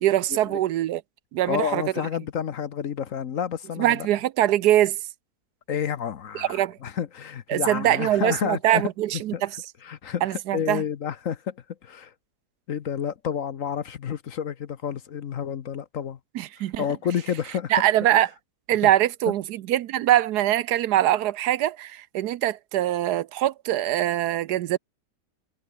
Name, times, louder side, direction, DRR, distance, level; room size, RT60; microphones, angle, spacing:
voice 1, 0.0-1.0 1.3-1.8 3.8-5.0 6.3-6.8 7.5-9.5 10.2-10.8 16.3-16.8 17.7-18.3 18.7-24.8, right 13 dB, 75° right, 1.2 m, -23 dB
voice 2, 1.4-4.1 5.7-8.8 9.3-11.6 11.8-12.1 12.7-16.2 16.8-17.7 18.8-18.9, left 8 dB, 55° left, 1.2 m, -30 dB
omnidirectional pair, 1.8 m